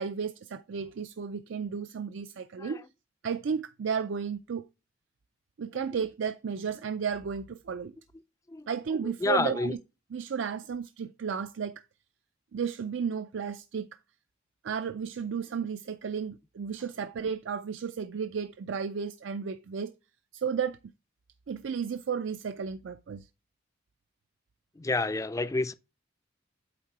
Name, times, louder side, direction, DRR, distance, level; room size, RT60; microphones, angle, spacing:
voice 1, 0.0-2.8 3.2-4.7 5.6-7.9 8.7-9.8 10.1-11.8 12.5-13.9 14.6-19.9 20.3-20.8 21.5-23.3, right 6 dB, 65° right, 0.4 m, -33 dB
voice 2, 9.0-9.7 24.8-25.7, left 3 dB, 15° left, 0.4 m, -30 dB
8.6 x 3.6 x 4.5 m
head